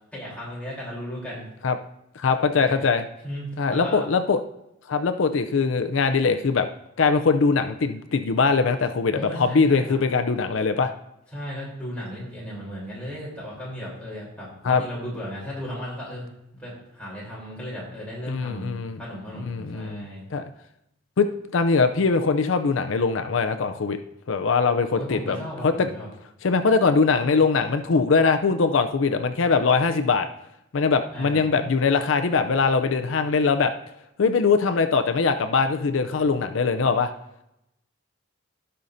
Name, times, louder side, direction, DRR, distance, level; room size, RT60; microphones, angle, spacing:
voice 1, 0.1-1.5 2.5-2.9 3.2-4.0 9.1-10.0 11.3-16.3 16.6-20.2 25.0-26.1 31.1-31.4, equal, 5° left, -7 dB, 3.4 m, -35 dB
voice 2, 2.2-3.0 3.6-4.4 4.9-6.7 7.0-10.9 14.6-14.8 18.3-19.0 19.5-20.4 21.2-21.3 21.5-24.0 24.3-25.4 25.6-25.9 26.4-30.3 30.7-33.7 34.2-37.1, left 4 dB, 75° left, 7 dB, 0.5 m, -22 dB
16.5 x 5.6 x 2.7 m, 0.86 s
head